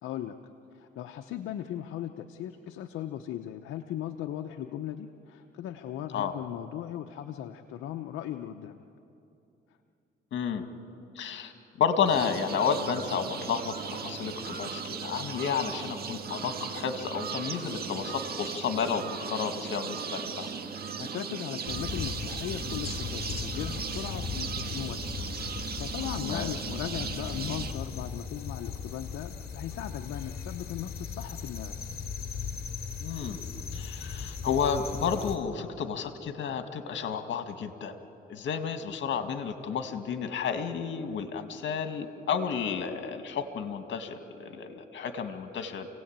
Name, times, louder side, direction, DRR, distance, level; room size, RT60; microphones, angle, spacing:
voice 1, 0.0-0.4 0.7-8.8 21.0-25.0 25.3-31.8, left 11 dB, 85° left, 6 dB, 0.9 m, -38 dB
voice 2, 10.3-10.6 11.2-11.5 11.8-20.5 26.2-26.5 33.0-33.4 33.7-37.9 38.3-45.9, left 6 dB, 70° left, 7 dB, 2.1 m, -31 dB
sound 1, 12.1-27.7, right 6 dB, 50° right, 1.9 m, -37 dB
sound 2, 21.7-35.4, left 6 dB, 50° left, 2.8 m, -38 dB
28.5 x 17.5 x 8.9 m, 2.8 s
cardioid pair, 90°, 20 cm